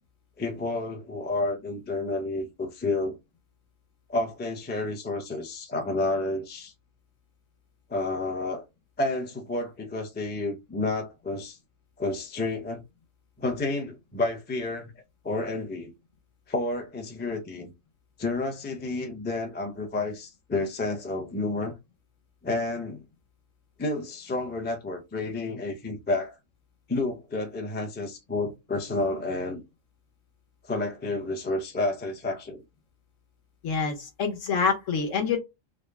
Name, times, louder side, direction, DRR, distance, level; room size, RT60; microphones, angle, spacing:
voice 1, 0.4-3.2 4.1-6.7 7.9-8.6 9.0-11.6 12.0-12.8 13.4-14.9 15.2-15.9 16.5-17.7 18.2-21.7 22.4-23.0 23.8-26.3 26.9-29.6 30.6-32.6, left 2 dB, 15° left, 0.4 m, -30 dB
voice 2, 33.6-35.4, left 5 dB, 70° left, 1.3 m, -26 dB
3.5 x 2.1 x 3.5 m
omnidirectional pair, 1.4 m